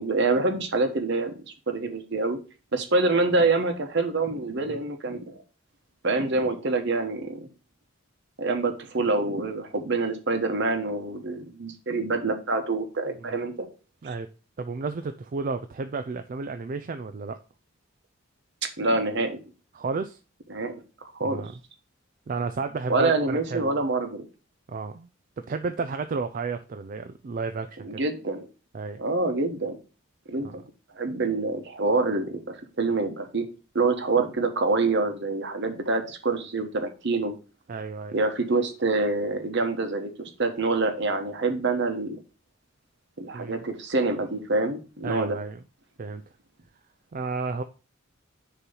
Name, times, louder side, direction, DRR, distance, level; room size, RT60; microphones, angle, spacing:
voice 1, 0.0-1.3 1.7-2.4 2.7-5.4 6.0-7.5 8.4-13.7 18.8-19.4 20.5-20.7 21.0-21.5 22.9-24.3 27.8-28.5 29.0-29.8 30.3-30.6 30.9-33.5 33.7-37.3 38.1-42.2 43.2-45.4, right 3 dB, 60° right, 7 dB, 1.1 m, -26 dB
voice 2, 14.6-17.4 19.7-20.2 21.2-21.5 22.3-23.8 24.7-25.1 25.4-28.0 28.7-29.0 30.4-30.6 37.7-38.2 43.3-43.7 45.0-45.6 46.0-46.2 47.1-47.6, right 4 dB, 40° right, 8 dB, 0.4 m, -32 dB
6.7 x 3.0 x 5.5 m, 0.34 s
head